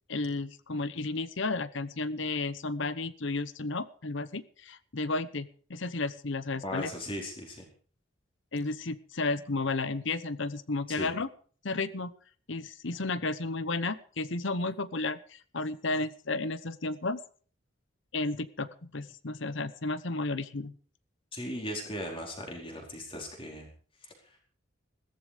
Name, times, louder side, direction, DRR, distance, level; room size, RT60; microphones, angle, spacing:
voice 1, 0.1-6.9 8.5-11.3 11.6-12.1 12.5-17.2 18.1-20.7, left 3 dB, 60° left, 15 dB, 0.9 m, -33 dB
voice 2, 6.6-7.6 10.9-11.1 21.3-23.7 24.0-24.4, left 1 dB, 25° left, 1 dB, 4.5 m, -38 dB
15.5 x 14.0 x 5.1 m, 0.44 s
head